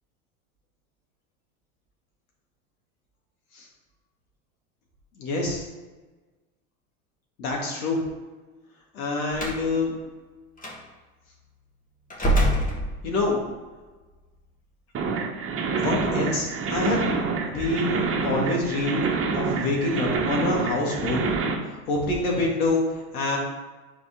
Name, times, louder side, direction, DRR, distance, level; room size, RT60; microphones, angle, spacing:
voice 1, 5.2-5.6 7.4-8.0 8.9-9.9 13.0-13.5 15.6-17.1 17.5-19.1 19.3-21.3 21.7-23.4, left 2 dB, 75° left, -1 dB, 2.4 m, -26 dB
Slam, 9.3-9.6 10.6-10.8 12.1-13.4, right 1 dB, 20° left, 1.8 m, -24 dB
sound 1, 14.9-21.5, right 4 dB, 30° right, 1.2 m, -27 dB
8.9 x 4.9 x 3.8 m, 1.3 s
hypercardioid pair, 95°, 43 cm